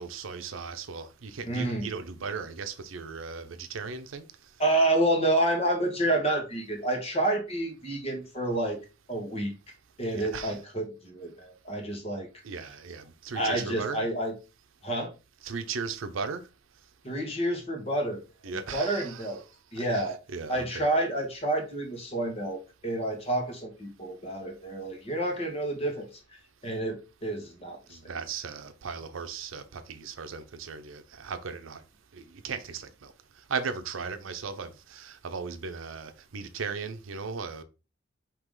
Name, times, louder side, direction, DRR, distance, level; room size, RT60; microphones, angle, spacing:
voice 1, 0.0-4.3 10.1-10.6 12.4-14.1 15.4-16.4 18.4-19.5 19.8-20.9 27.9-31.8 32.1-37.6, right 5 dB, 85° right, 0.6 m, -37 dB
voice 2, 1.4-1.9 4.6-8.8 9.1-9.5 10.0-12.3 13.3-14.3 14.8-15.1 17.0-18.2 18.7-19.4 19.7-20.2 20.5-26.1 26.6-28.0, right 1 dB, 30° left, 1.2 m, -29 dB
4.7 x 2.9 x 3.7 m
head